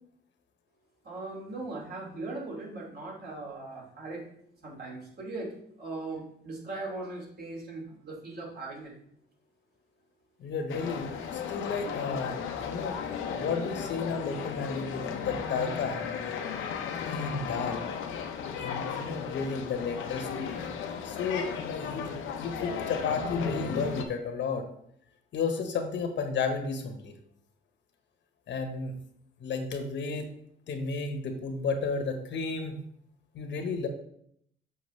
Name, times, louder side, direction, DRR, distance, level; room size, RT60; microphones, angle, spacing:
voice 1, 1.0-4.2 4.6-5.5 5.8-8.9, right 2 dB, 50° right, -2 dB, 2.7 m, -39 dB
voice 2, 10.4-12.4 12.6-13.0 13.3-16.0 17.0-17.8 18.6-20.6 20.9-22.1 22.4-24.6 25.3-27.1 28.5-28.9 29.4-30.3 30.7-32.7 33.3-33.9, left 4 dB, 65° left, 5 dB, 1.1 m, -32 dB
sound 1, 10.7-24.0, left 7 dB, 80° left, 0.8 m, -35 dB
6.9 x 5.6 x 3.2 m, 0.70 s
cardioid pair, 90°, 20 cm